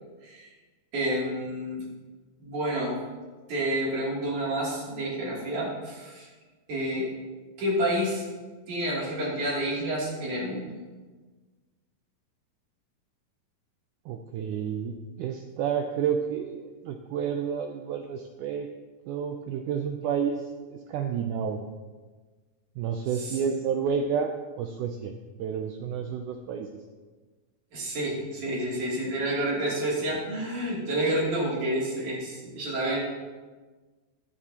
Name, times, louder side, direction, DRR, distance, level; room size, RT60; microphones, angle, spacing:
voice 1, 0.9-1.9 2.4-3.0 3.5-6.3 6.7-7.1 7.6-8.2 8.7-10.7 23.2-23.4 27.7-33.0, right 1 dB, 55° right, -5 dB, 4.1 m, -29 dB
voice 2, 14.1-18.7 19.1-21.6 22.8-25.1 25.4-26.8, right 7 dB, 80° right, 5 dB, 1.8 m, -30 dB
14.5 x 11.0 x 2.9 m, 1.4 s
omnidirectional pair, 4.2 m